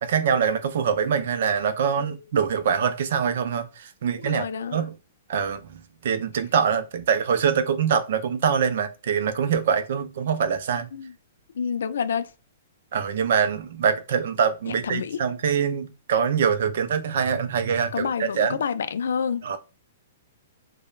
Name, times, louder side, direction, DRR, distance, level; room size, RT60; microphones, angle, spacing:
voice 1, 0.0-4.5 4.7-4.9 5.3-10.9 12.9-18.6 19.4-19.6, right 7 dB, 55° right, 0.4 m, -24 dB
voice 2, 4.1-4.9 10.9-11.1 11.5-12.3 14.7-15.2 17.9-19.4, left 6 dB, 80° left, 0.3 m, -29 dB
2.3 x 2.0 x 3.0 m
hypercardioid pair, 170°, 0 cm